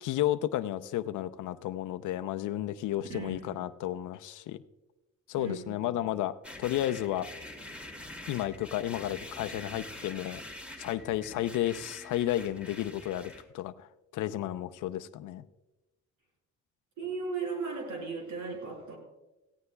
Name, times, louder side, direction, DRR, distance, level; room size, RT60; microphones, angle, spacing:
voice 1, 0.0-4.6 5.3-6.3 6.6-7.3 8.3-10.4 10.8-13.9 14.1-15.4, left 13 dB, 80° left, 11 dB, 0.6 m, -32 dB
voice 2, 3.0-3.7 5.4-6.1 17.0-19.0, right 4 dB, 80° right, 1 dB, 5.1 m, -37 dB
sound 1, 6.4-13.4, left 1 dB, 5° right, 2.4 m, -45 dB
18.0 x 16.0 x 2.3 m, 1.0 s
cardioid pair, 90°, 30 cm